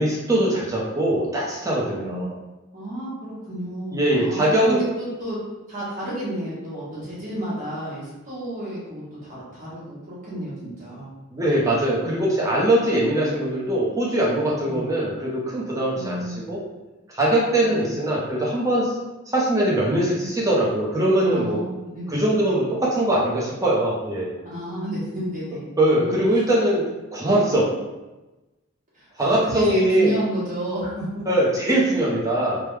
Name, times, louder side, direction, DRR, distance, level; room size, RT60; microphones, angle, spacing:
voice 1, 0.0-2.3 3.9-4.8 11.3-16.2 16.5-16.6 17.1-18.9 19.3-21.6 22.1-24.3 25.8-27.7 29.2-30.2 31.3-32.6, right 1 dB, 15° right, -5 dB, 0.7 m, -21 dB
voice 2, 1.9-2.2 2.7-5.4 5.7-11.1 12.0-12.3 14.6-14.8 15.9-16.6 17.6-17.9 21.2-22.2 24.4-26.2 28.9-31.2, right 1 dB, 40° right, -8 dB, 1.4 m, -31 dB
3.3 x 2.2 x 3.3 m, 1.1 s
head